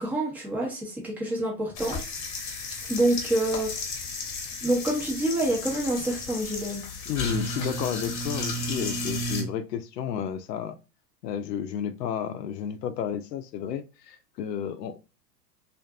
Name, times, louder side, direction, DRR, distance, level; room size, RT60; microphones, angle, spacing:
voice 1, 0.0-2.0 2.9-3.7 4.6-6.8, right 1 dB, 5° right, -2 dB, 0.5 m, -27 dB
sound 1, 1.7-9.4, left 2 dB, 30° left, 0.9 m, -33 dB
voice 2, 7.1-10.8 11.2-15.0, left 9 dB, 75° left, 10 dB, 0.6 m, -32 dB
2.5 x 2.5 x 2.3 m, 0.30 s
hypercardioid pair, 120°, 50 cm